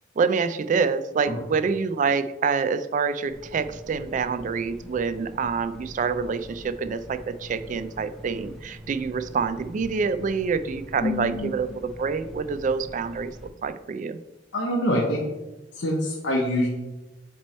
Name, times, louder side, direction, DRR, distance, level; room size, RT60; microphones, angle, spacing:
voice 1, 0.2-14.2, right 5 dB, 45° right, 12 dB, 0.3 m, -26 dB
sound 1, 3.3-13.5, equal, ahead, 0.7 m, -43 dB
voice 2, 11.0-11.5 14.5-15.3 15.7-16.7, left 1 dB, 90° left, -2 dB, 0.8 m, -25 dB
7.5 x 3.0 x 4.2 m, 1.1 s
head